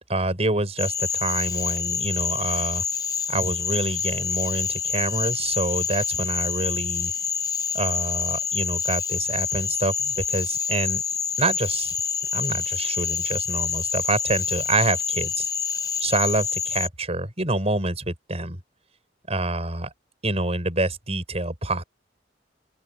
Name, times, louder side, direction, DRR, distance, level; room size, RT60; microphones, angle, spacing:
voice 1, 0.1-2.8 3.3-7.1 7.7-11.0 11.4-11.9 12.3-15.5 16.0-18.6 19.3-19.9 20.2-21.8, right 2 dB, 35° right, 7.0 m, -27 dB
Cricket / Frog, 0.8-16.9, left 6 dB, 20° left, 0.9 m, -27 dB
open air
head